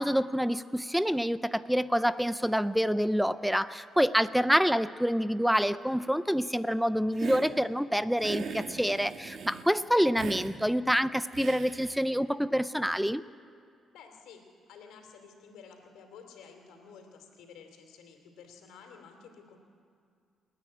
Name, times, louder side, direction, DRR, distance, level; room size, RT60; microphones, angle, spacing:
voice 1, 0.0-13.2, equal, ahead, 15 dB, 0.5 m, -27 dB
Hiss, 7.1-7.5 8.2-9.7 10.2-10.5 11.3-12.0, right 5 dB, 60° right, 1.5 m, -39 dB
voice 2, 13.9-14.4 14.7-19.6, left 6 dB, 90° left, 4 dB, 2.9 m, -52 dB
28.0 x 9.4 x 9.9 m, 2.4 s
cardioid pair, 90°, 0 cm